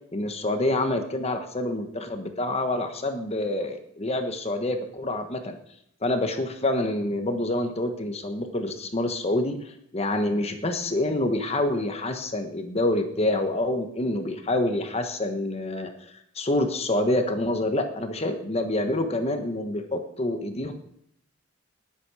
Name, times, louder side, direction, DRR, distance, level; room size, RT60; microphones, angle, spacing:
voice 1, 0.1-5.6 6.0-20.7, left 1 dB, 30° left, 6 dB, 1.3 m, -27 dB
19.5 x 8.6 x 4.9 m, 0.72 s
head